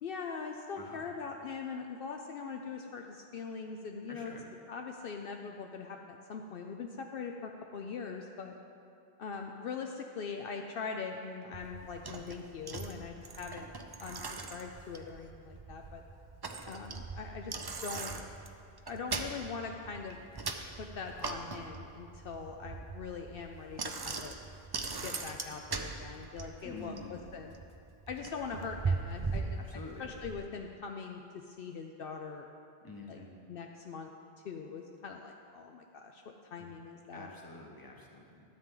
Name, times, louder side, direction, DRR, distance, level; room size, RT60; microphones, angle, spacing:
voice 1, 0.0-4.3 4.7-8.5 9.2-13.7 14.0-16.0 16.6-18.1 18.9-20.2 20.8-24.4 25.0-27.6 28.1-32.5 33.1-33.2 33.5-34.1 34.4-37.3, left 5 dB, 65° left, 3 dB, 0.8 m, -42 dB
voice 2, 4.1-4.4 26.6-27.2 29.6-30.1 32.8-33.3 37.1-38.4, left 3 dB, 20° left, 0 dB, 1.1 m, -48 dB
Bicycle, 11.5-30.4, right 4 dB, 35° right, 0.4 m, -40 dB
12.5 x 8.5 x 3.8 m, 2.5 s
omnidirectional pair, 1.0 m